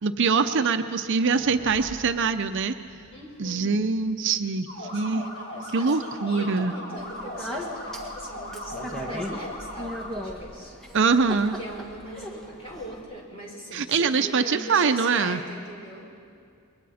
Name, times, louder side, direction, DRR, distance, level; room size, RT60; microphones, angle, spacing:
voice 1, 0.0-2.7 3.4-4.7 4.9-5.2 5.7-6.7 10.9-11.5 13.7-15.4, right 5 dB, 60° right, 9 dB, 0.7 m, -23 dB
sound 1, 1.3-5.5, equal, 75° left, 3.2 m, -48 dB
voice 2, 3.1-3.8 4.7-10.7 11.4-16.1, right 1 dB, 30° left, -2 dB, 4.5 m, -41 dB
sound 2, 4.7-10.1, left 1 dB, 55° left, 3.6 m, -38 dB
Speech, 7.0-13.0, equal, 5° left, 2.0 m, -37 dB
28.5 x 22.0 x 4.3 m, 2.4 s
head